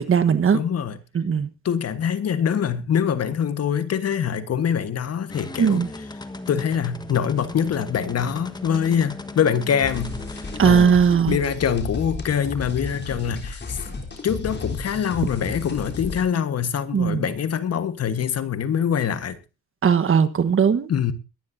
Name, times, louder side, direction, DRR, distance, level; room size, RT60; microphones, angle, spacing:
voice 1, 0.0-0.6 1.1-1.5 5.6-5.9 10.6-11.4 16.9-17.2 19.8-20.9, right 7 dB, 45° right, 1.3 m, -18 dB
voice 2, 0.5-1.0 1.6-5.8 6.5-11.0 11.3-13.8 14.2-19.4 20.9-21.1, left 8 dB, 55° left, 1.4 m, -24 dB
sound 1, 5.3-10.9, left 2 dB, 15° left, 1.4 m, -37 dB
sound 2, 9.8-16.2, left 4 dB, 35° left, 3.7 m, -33 dB
22.5 x 11.0 x 2.7 m
cardioid pair, 90°, 30 cm